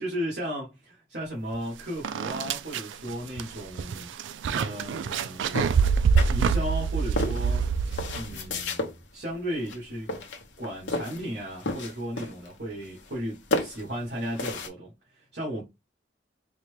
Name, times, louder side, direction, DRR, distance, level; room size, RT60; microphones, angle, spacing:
voice 1, 0.0-4.1 4.5-5.9 6.3-7.7 8.1-10.1 10.6-15.6, equal, 65° right, 1.5 m, -35 dB
sound 1, 1.5-1.6 2.0-8.4, right 5 dB, 85° right, 0.3 m, -26 dB
sound 2, 5.5-6.7 7.2-8.9 9.6-9.8 10.1-11.3 11.6-12.5 12.8-13.3 13.5-14.7, left 2 dB, 80° left, 0.8 m, -32 dB
4.2 x 2.2 x 3.2 m
head